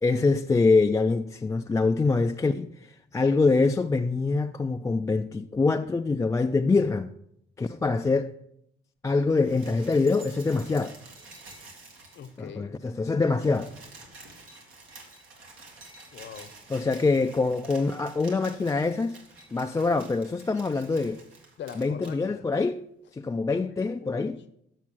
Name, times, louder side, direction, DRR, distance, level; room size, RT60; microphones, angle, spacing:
voice 1, 0.0-2.7 3.1-7.1 7.6-8.3 9.0-10.9 12.4-13.7 16.7-19.2 19.5-21.2 21.8-22.8 23.1-24.4, left 3 dB, 15° left, 0.3 m, -24 dB
sound 1, 9.2-12.5 12.8-12.9 13.1-22.2 23.1-23.2, right 2 dB, 85° right, 2.1 m, -49 dB
voice 2, 12.1-12.7 16.1-16.5 21.6-22.5 23.6-24.5, left 8 dB, 65° left, 0.8 m, -43 dB
7.3 x 6.6 x 5.9 m
cardioid pair, 90°, 20 cm